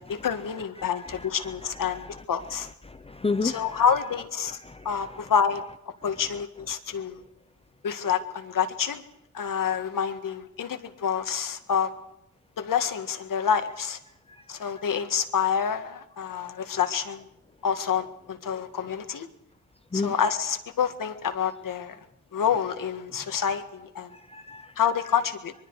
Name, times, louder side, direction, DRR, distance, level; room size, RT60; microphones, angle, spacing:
voice 1, 0.0-2.7 3.4-4.6 4.9-5.6 6.0-7.2 7.8-9.0 9.3-11.9 12.6-14.0 14.5-17.3 17.6-19.3 19.9-22.0 22.3-24.1 24.8-25.5, left 7 dB, 75° left, 8 dB, 1.8 m, -27 dB
voice 2, 2.9-3.8 4.6-4.9 19.9-20.1 24.1-24.7, left 3 dB, 15° left, 9 dB, 0.7 m, -30 dB
24.0 x 23.5 x 4.8 m, 0.86 s
wide cardioid pair, 140°, 33 cm